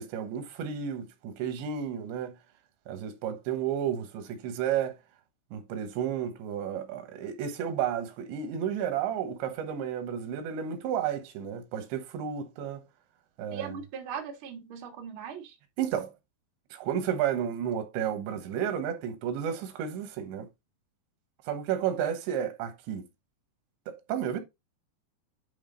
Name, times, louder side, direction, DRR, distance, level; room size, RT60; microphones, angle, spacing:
voice 1, 0.0-2.4 2.9-5.0 5.5-12.8 13.4-13.7 15.8-16.1 16.7-20.5 21.5-23.1 23.9-24.4, right 9 dB, 90° right, 3.5 m, -32 dB
voice 2, 13.5-15.5, right 7 dB, 55° right, 1.4 m, -39 dB
10.5 x 3.7 x 3.9 m
omnidirectional pair, 5.0 m